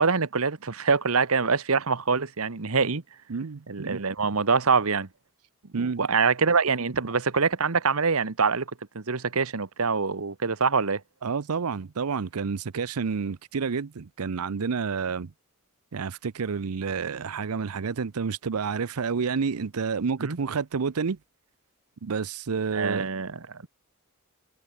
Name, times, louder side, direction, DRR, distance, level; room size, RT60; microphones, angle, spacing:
voice 1, 0.0-3.0 3.7-5.1 5.8-8.7 8.9-11.0 20.2-20.4 22.7-23.7, right 5 dB, 75° right, 1.2 m, -25 dB
voice 2, 3.3-4.0 5.7-6.1 11.2-15.3 15.9-21.2 22.0-23.1, right 5 dB, 90° right, 0.6 m, -29 dB
head